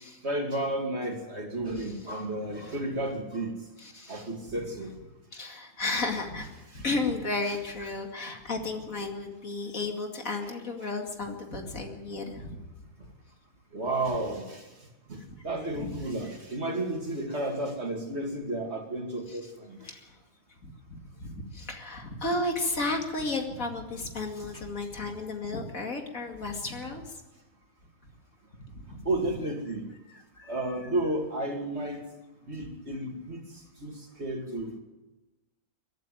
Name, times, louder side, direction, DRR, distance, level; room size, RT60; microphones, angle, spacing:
voice 1, 0.2-3.6 4.1-5.0 6.7-6.8 7.5-7.6 7.9-8.0 8.3-8.4 13.7-19.9 29.0-29.9 30.5-32.0 32.5-34.8, right 1 dB, 45° right, 2 dB, 2.9 m, -32 dB
voice 2, 3.8-4.2 5.3-12.5 15.7-16.0 19.8-20.1 20.6-27.0 28.9-29.0 30.1-30.5, left 2 dB, 60° left, 3 dB, 2.8 m, -33 dB
23.0 x 12.5 x 9.2 m, 1.1 s
omnidirectional pair, 1.6 m